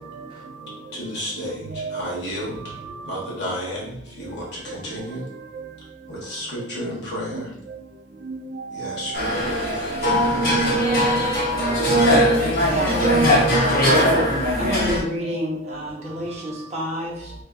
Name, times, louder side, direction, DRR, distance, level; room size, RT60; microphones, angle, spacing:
voice 1, 0.9-2.6 3.0-5.2 6.1-7.5 8.7-9.9, equal, 80° left, 1.0 m, -32 dB
voice 2, 2.6-3.2 7.3-7.4 8.3-10.1 10.5-10.8 12.0-12.4 13.7-14.1, right 4 dB, 85° right, 0.4 m, -34 dB
sound 1, 9.1-15.0, equal, 55° left, 0.9 m, -19 dB
voice 3, 12.7-13.5 14.5-17.3, equal, 40° right, 0.7 m, -29 dB
2.6 x 2.5 x 2.4 m
head